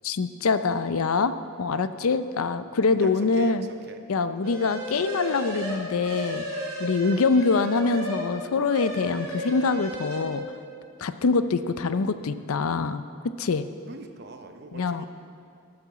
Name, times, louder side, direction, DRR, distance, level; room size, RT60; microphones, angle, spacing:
voice 1, 0.0-1.3 1.6-3.7 4.1-10.4 11.0-13.7 14.7-15.0, left 4 dB, 75° left, 12 dB, 0.5 m, -25 dB
voice 2, 2.8-4.1 13.8-15.1, right 2 dB, 50° right, 6 dB, 0.8 m, -42 dB
sound 1, 4.4-8.3 8.6-10.2, equal, 70° right, 3.0 m, -34 dB
13.0 x 6.9 x 7.4 m, 2.4 s
head